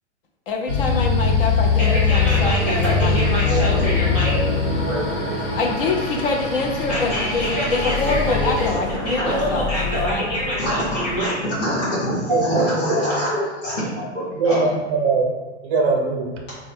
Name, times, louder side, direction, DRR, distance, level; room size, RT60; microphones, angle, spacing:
voice 1, 0.5-3.2 5.6-10.3, left 3 dB, 50° left, 1 dB, 0.7 m, -25 dB
sound 1, 0.7-8.7, left 4 dB, 75° left, 1.3 m, -22 dB
voice 2, 1.8-4.4 4.7-5.3 6.9-14.6 16.5-16.6, equal, 25° left, -10 dB, 1.2 m, -25 dB
sound 2, 2.6-11.2, left 2 dB, 5° right, 1.1 m, -32 dB
voice 3, 12.3-13.0 14.4-15.3 15.6-16.3, right 4 dB, 20° right, 0 dB, 0.5 m, -21 dB
4.2 x 2.3 x 4.3 m, 1.3 s
hypercardioid pair, 165°, 36 cm